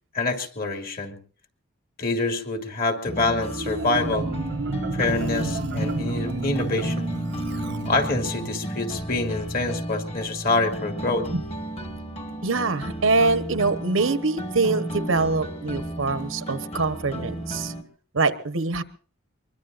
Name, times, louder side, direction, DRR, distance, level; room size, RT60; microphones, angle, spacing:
voice 1, 0.1-1.2 2.0-4.3 4.9-7.1 7.9-11.3, left 2 dB, 45° left, 5 dB, 2.3 m, -26 dB
sound 1, 3.1-17.8, right 1 dB, 30° left, 1.6 m, -33 dB
Marimba xylophone, 3.4-8.6, right 3 dB, 60° right, 0.6 m, -31 dB
voice 2, 12.4-17.7 18.1-18.8, right 3 dB, 85° right, 11 dB, 1.2 m, -24 dB
23.5 x 22.0 x 2.6 m, 0.41 s
head